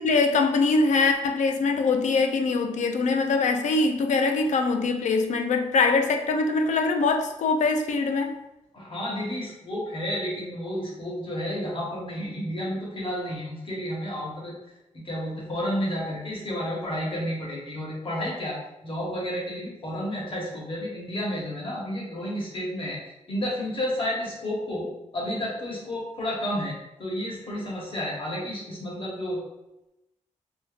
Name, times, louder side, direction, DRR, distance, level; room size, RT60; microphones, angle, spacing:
voice 1, 0.0-8.4, left 3 dB, 70° left, 5 dB, 0.4 m, -23 dB
voice 2, 8.7-14.5 14.9-23.0 23.3-26.7 27.0-29.4, equal, 45° left, -4 dB, 1.1 m, -31 dB
3.5 x 2.6 x 2.4 m, 0.93 s
wide cardioid pair, 125°, 13 cm